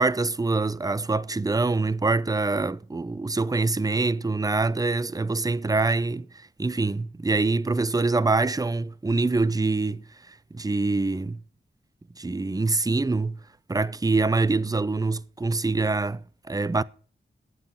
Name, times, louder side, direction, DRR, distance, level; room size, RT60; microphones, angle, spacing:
voice 1, 0.0-6.3 6.6-10.0 10.5-11.4 12.2-13.4 13.7-16.8, right 3 dB, 20° right, 0.5 m, -25 dB
12.5 x 8.6 x 5.8 m
wide cardioid pair, 65°, 20 cm